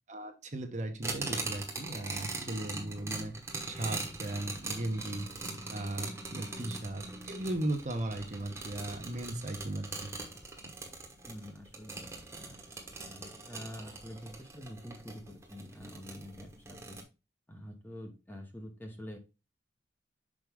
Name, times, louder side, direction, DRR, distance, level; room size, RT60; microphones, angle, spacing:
voice 1, 0.1-3.3 3.7-5.3 5.7-10.1, right 1 dB, 40° right, 5 dB, 0.9 m, -37 dB
sound 1, 1.0-17.0, right 3 dB, 15° right, 1.2 m, -41 dB
voice 2, 11.2-12.6 13.0-17.0 17.5-19.2, equal, 10° left, 4 dB, 0.9 m, -47 dB
6.3 x 4.7 x 3.5 m, 0.28 s
head